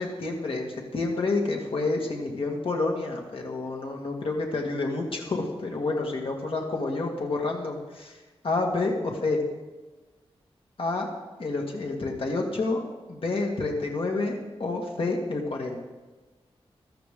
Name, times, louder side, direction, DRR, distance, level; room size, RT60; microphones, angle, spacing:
voice 1, 0.0-8.1 8.4-9.4 10.8-11.1 11.4-12.8 13.1-15.8, left 3 dB, 60° left, 1 dB, 1.8 m, -29 dB
15.5 x 13.0 x 3.7 m, 1.2 s
wide cardioid pair, 130°, 11 cm